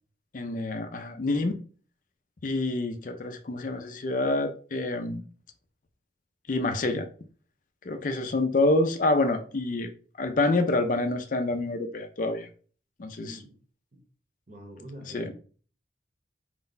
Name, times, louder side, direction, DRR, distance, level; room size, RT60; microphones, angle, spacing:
voice 1, 0.3-1.6 2.4-5.2 6.5-7.1 7.8-9.9 10.2-12.5 13.0-13.4 15.1-15.3, left 2 dB, 45° left, 0.4 m, -27 dB
voice 2, 13.2-13.6 13.9-14.0 14.5-15.3, right 1 dB, 40° right, 0.9 m, -45 dB
4.6 x 2.2 x 3.9 m
head